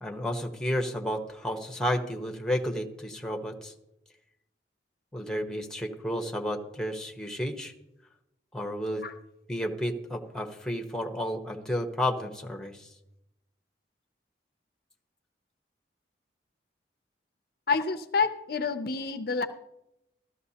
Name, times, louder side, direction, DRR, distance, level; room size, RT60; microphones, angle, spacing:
voice 1, 0.0-3.7 5.1-7.7 8.5-9.0 9.5-12.9, equal, 5° left, 4 dB, 1.0 m, -32 dB
voice 2, 17.7-19.5, left 4 dB, 55° left, 9 dB, 0.5 m, -28 dB
14.0 x 13.5 x 2.8 m, 0.88 s
head